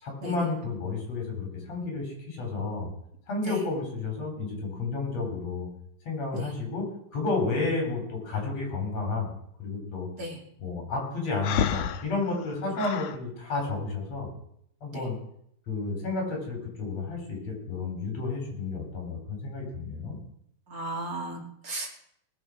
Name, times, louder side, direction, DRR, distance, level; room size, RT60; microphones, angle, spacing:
voice 1, 0.0-2.9 3.3-5.7 6.1-9.3 9.6-10.1 10.6-14.3 14.8-15.2 15.7-20.2, left 3 dB, 50° left, 1 dB, 5.2 m, -31 dB
Breathing, 11.4-13.2, left 10 dB, 75° left, 2.2 m, -30 dB
voice 2, 20.7-21.9, right 1 dB, 30° right, 0 dB, 2.5 m, -35 dB
18.5 x 7.1 x 6.3 m, 0.71 s
omnidirectional pair, 3.8 m